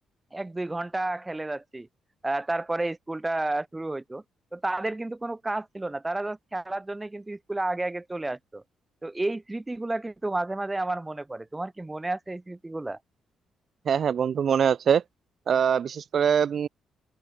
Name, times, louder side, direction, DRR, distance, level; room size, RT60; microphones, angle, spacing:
voice 1, 0.3-1.9 2.2-4.2 4.5-8.6 9.0-13.0, right 2 dB, 15° right, 2.8 m, -31 dB
voice 2, 13.9-15.0 15.5-16.7, right 7 dB, 55° right, 0.8 m, -23 dB
open air
cardioid pair, 90°, 0 cm